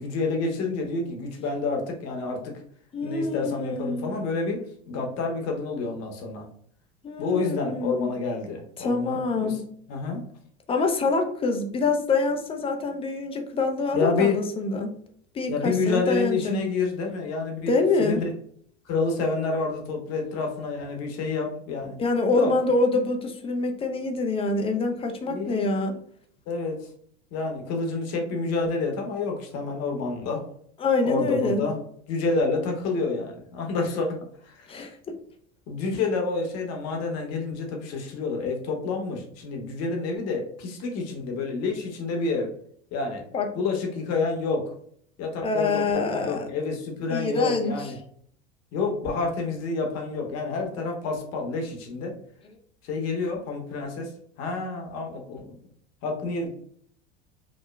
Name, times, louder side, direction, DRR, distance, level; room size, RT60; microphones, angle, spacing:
voice 1, 0.0-2.5 3.0-4.6 4.9-6.4 7.2-9.6 9.9-10.2 13.9-14.4 15.5-18.3 18.8-22.0 22.3-22.5 25.3-25.7 26.5-26.9 27.3-30.4 31.0-31.8 32.1-34.1 34.4-34.7 35.7-42.5 42.9-43.2 43.5-44.6 45.2-48.0 48.7-52.1 52.8-54.1 54.4-55.6 56.0-56.5, left 3 dB, 50° left, 2 dB, 0.8 m, -28 dB
voice 2, 2.9-4.2 7.0-8.1 8.8-9.6 10.7-14.9 15.3-16.6 17.7-18.2 22.0-26.0 30.8-31.7 34.7-35.1 43.3-43.5 45.4-46.5 47.1-47.7, left 3 dB, 20° left, 4 dB, 0.3 m, -26 dB
2.9 x 2.1 x 2.2 m, 0.62 s
hypercardioid pair, 85°, 33 cm